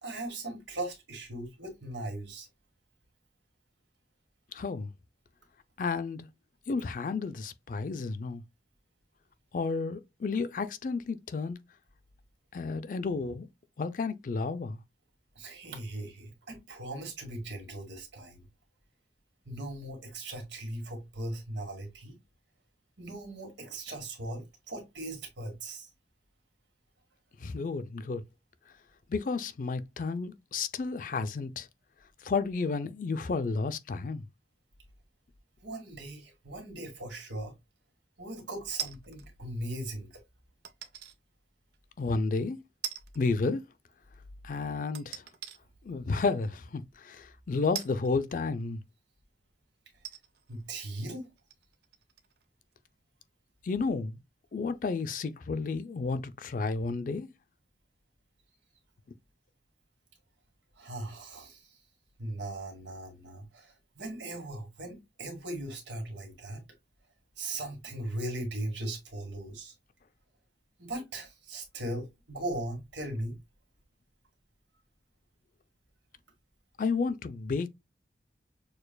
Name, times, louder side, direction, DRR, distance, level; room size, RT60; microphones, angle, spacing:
voice 1, 0.0-2.5 15.4-18.5 19.5-22.2 23.0-25.9 35.6-37.5 38.2-40.2 50.5-51.3 60.8-61.8 62.2-66.6 67.4-69.7 70.8-73.4, right 1 dB, 85° right, 1.8 m, -39 dB
voice 2, 4.5-4.9 5.8-6.3 6.7-8.4 9.5-11.6 12.5-13.5 13.8-14.8 27.4-28.2 29.1-31.7 32.2-34.2 42.0-42.6 43.2-43.6 44.4-45.2 45.8-48.8 53.6-54.2 54.5-57.3 76.8-77.7, left 4 dB, 45° left, 0.3 m, -31 dB
sound 1, 38.8-39.3 40.6-41.2 41.7-41.8 42.8-43.3 43.6-43.7 44.9-45.6 46.4-46.5 47.7-48.8 49.5-49.6 50.0-52.4 52.7-52.8, right 10 dB, 60° right, 0.5 m, -41 dB
6.6 x 2.3 x 2.2 m
head